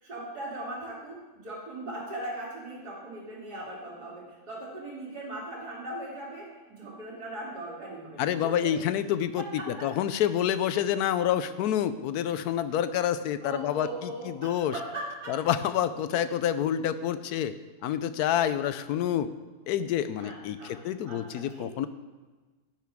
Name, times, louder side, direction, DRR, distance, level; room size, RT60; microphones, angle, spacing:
voice 1, 0.0-8.8 9.4-9.9 13.4-15.3 18.3-18.5 20.2-21.6, right 1 dB, 85° right, -5 dB, 3.5 m, -39 dB
voice 2, 8.2-14.7 15.3-17.5 17.8-19.3 19.7-21.9, left 10 dB, 80° left, 13 dB, 1.1 m, -28 dB
10.5 x 10.5 x 3.6 m, 1.3 s
omnidirectional pair, 1.7 m